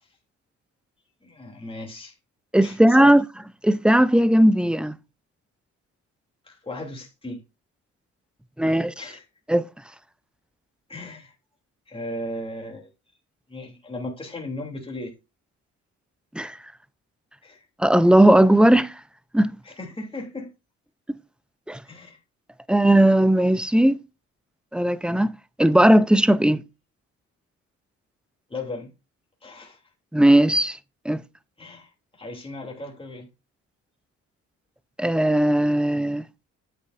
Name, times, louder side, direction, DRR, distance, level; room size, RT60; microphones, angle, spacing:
voice 1, 1.2-2.1 2.6-3.2 6.4-7.4 9.0-9.2 10.9-11.3 11.9-12.9 13.5-15.1 17.4-17.6 19.6-20.5 21.9-22.2 28.5-28.9 29.4-29.8 31.6-31.9 32.2-33.3, left 2 dB, 20° left, 3.0 m, -36 dB
voice 2, 2.5-3.2 3.6-4.9 8.6-8.9 9.5-9.6 16.4-16.5 17.8-18.9 19.3-19.5 21.7-21.8 22.7-24.0 24.7-25.3 25.6-26.6 30.1-30.8 31.1-31.2 35.0-36.2, right 1 dB, 5° right, 0.6 m, -17 dB
9.9 x 8.2 x 2.6 m
cardioid pair, 90°, 30 cm